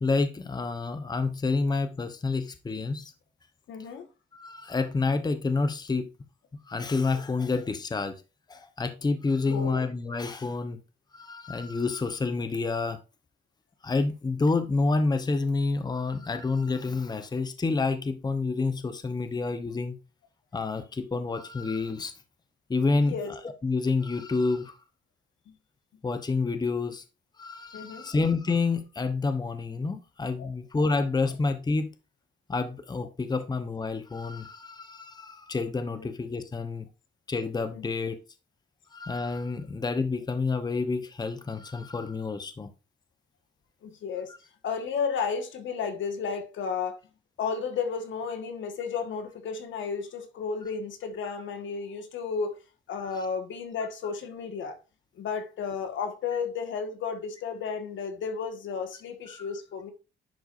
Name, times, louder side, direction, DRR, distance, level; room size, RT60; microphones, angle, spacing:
voice 1, 0.0-3.1 4.3-6.1 6.7-8.1 8.5-10.8 11.1-13.0 13.8-20.0 20.5-22.1 22.7-23.2 23.6-24.7 26.0-27.0 27.4-31.9 32.5-36.9 37.3-38.2 38.9-42.7 53.0-53.2 59.3-59.4, left 3 dB, 20° left, 0.9 m, -28 dB
voice 2, 3.7-4.1 9.4-9.8 22.9-23.3 25.5-25.6 27.7-28.1 30.4-30.5 35.9-36.1 37.7-37.8 43.8-44.3 44.6-47.0 47.4-52.6 52.9-54.8 55.1-59.9, left 5 dB, 70° left, 1.5 m, -33 dB
10.5 x 4.6 x 2.6 m
cardioid pair, 90°, 20 cm